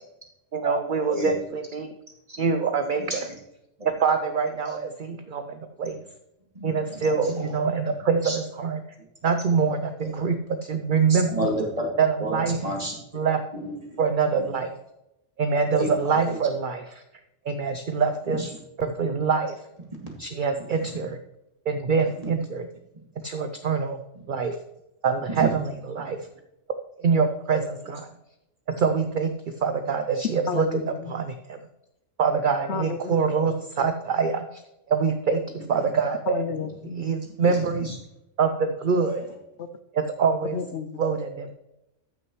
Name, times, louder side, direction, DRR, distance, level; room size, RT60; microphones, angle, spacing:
voice 1, 0.5-1.9 2.4-3.0 3.8-5.9 6.6-8.8 9.2-11.5 12.0-12.6 13.1-13.4 14.0-14.7 15.4-17.0 17.5-18.4 18.8-19.5 20.2-21.2 21.7-22.7 23.2-24.0 24.3-24.6 25.0-26.2 27.0-28.1 28.8-29.3 29.6-30.7 31.1-31.6 32.2-34.5 34.9-36.4 36.8-37.9 38.4-39.2 39.9-40.6 41.0-41.5, right 5 dB, 50° right, 8 dB, 0.7 m, -25 dB
voice 2, 3.0-3.3 6.5-7.5 7.9-8.0 8.2-8.4 10.0-10.1 11.1-11.9 12.2-12.9 14.3-14.5 15.7-16.4 18.3-18.5 20.8-20.9 22.2-22.3 25.3-25.6 35.7-35.8 37.4-38.0 39.0-39.1, right 1 dB, 30° right, -1 dB, 2.3 m, -31 dB
voice 3, 30.5-31.1 32.7-33.2 33.5-33.9 36.3-37.0 39.6-39.7 40.5-41.1, left 6 dB, 65° left, 11 dB, 0.9 m, -32 dB
14.0 x 6.2 x 3.1 m, 0.88 s
omnidirectional pair, 1.3 m